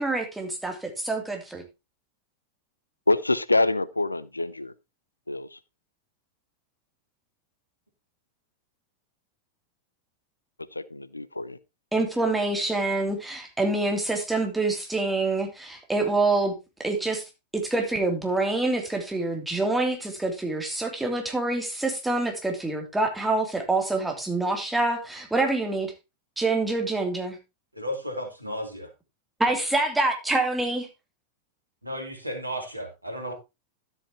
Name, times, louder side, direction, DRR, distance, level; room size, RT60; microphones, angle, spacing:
voice 1, 0.0-1.6 11.9-16.5 16.8-17.2 17.5-25.9 26.4-27.4 29.4-30.9, right 2 dB, 5° right, 2.8 m, -26 dB
voice 2, 3.1-4.7 5.3-5.6 10.7-11.6, left 2 dB, 85° left, 0.6 m, -26 dB
voice 3, 27.7-28.9 31.8-33.3, equal, 85° right, 2.9 m, -34 dB
12.5 x 8.2 x 2.9 m
figure-of-eight pair, 90°, 0 cm